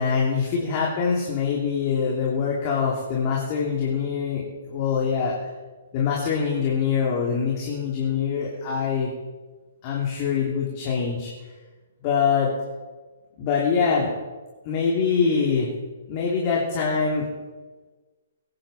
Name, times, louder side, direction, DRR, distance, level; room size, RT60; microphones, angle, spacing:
voice 1, 0.0-4.4 4.7-5.3 5.9-9.1 9.8-11.3 12.0-12.5 13.4-14.1 14.6-15.7 16.1-17.2, left 6 dB, 35° left, -3 dB, 3.1 m, -24 dB
22.5 x 10.5 x 4.4 m, 1.3 s
figure-of-eight pair, 120°, 0 cm